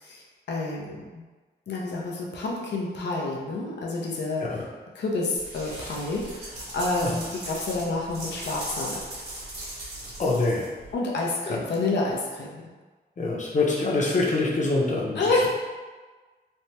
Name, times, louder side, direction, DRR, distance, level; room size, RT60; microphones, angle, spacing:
voice 1, 0.0-1.2 1.7-4.4 5.0-9.0 10.9-12.6 15.2-15.5, left 2 dB, 90° left, -3 dB, 0.6 m, -29 dB
sound 1, 5.4-10.9, right 1 dB, 70° right, 1.5 m, -38 dB
voice 2, 10.2-10.6 11.5-11.6 13.2-15.3, left 3 dB, 45° left, -4 dB, 0.7 m, -25 dB
3.3 x 2.1 x 2.8 m, 1.3 s
cardioid pair, 80°, 18 cm